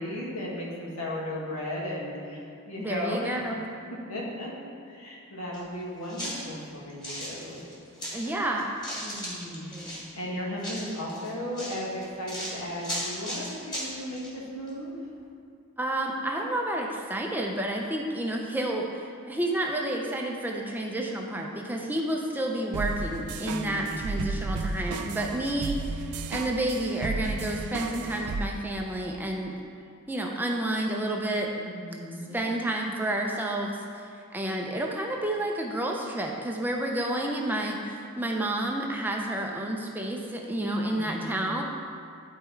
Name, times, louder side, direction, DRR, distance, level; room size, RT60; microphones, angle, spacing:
voice 1, 0.0-2.4 2.7-3.4 4.1-4.5 4.8-7.7 9.0-15.0 23.4-24.2 31.6-32.5 37.5-37.6 41.0-41.4, left 1 dB, 75° left, -4 dB, 1.8 m, -36 dB
voice 2, 2.8-3.7 8.1-8.7 9.7-10.0 15.8-29.5 30.1-31.5 32.3-33.8 34.3-41.6, right 1 dB, 10° right, 0 dB, 0.5 m, -30 dB
sound 1, 5.5-5.6 6.1-8.3 8.6-10.1 10.6-14.3 14.7-14.8, equal, 20° left, 2.0 m, -36 dB
sound 2, 22.7-28.5, right 3 dB, 85° right, 0.4 m, -33 dB
11.5 x 4.4 x 4.5 m, 2.4 s
head